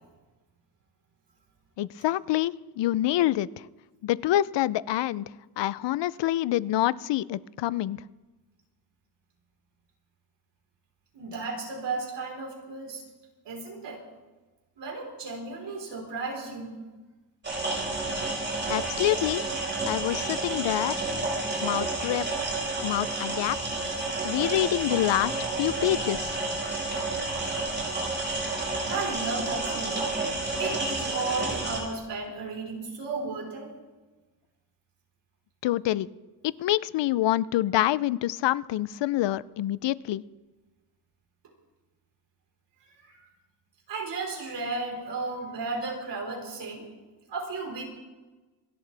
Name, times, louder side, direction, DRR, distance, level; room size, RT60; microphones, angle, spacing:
voice 1, 1.8-3.5 4.0-5.3 5.6-8.0 18.7-19.4 19.9-20.9 21.6-22.2 22.8-23.6 24.2-26.4 35.6-36.1 36.6-40.2, left 14 dB, 90° left, 19 dB, 0.5 m, -26 dB
voice 2, 11.1-13.0 13.4-14.0 14.8-16.8 26.9-27.2 28.9-30.2 30.6-33.7 43.0-43.3 43.9-46.9 47.3-47.8, right 3 dB, 80° right, -1 dB, 4.3 m, -34 dB
sound 1, 17.4-31.8, right 2 dB, 25° right, 5.4 m, -30 dB
27.5 x 11.0 x 3.4 m, 1.2 s
wide cardioid pair, 145°, 41 cm